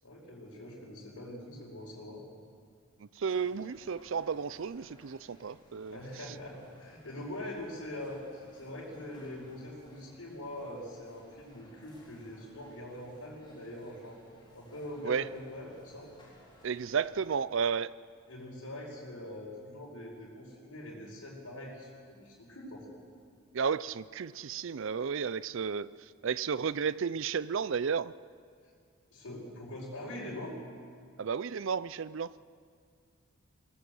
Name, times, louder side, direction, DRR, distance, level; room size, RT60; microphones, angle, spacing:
voice 1, 0.0-2.2 5.9-14.2 14.5-16.1 18.3-22.8 29.1-30.6, left 1 dB, 90° left, -5 dB, 5.1 m, -43 dB
voice 2, 3.2-6.0 15.0-15.3 16.6-17.9 23.5-25.9 26.2-28.1 31.2-32.3, right 6 dB, 60° right, 17 dB, 0.4 m, -32 dB
Coffeeshop in Vienna Austria, 3.3-17.5, equal, 20° left, 4.1 m, -60 dB
21.0 x 18.5 x 7.8 m, 2.1 s
head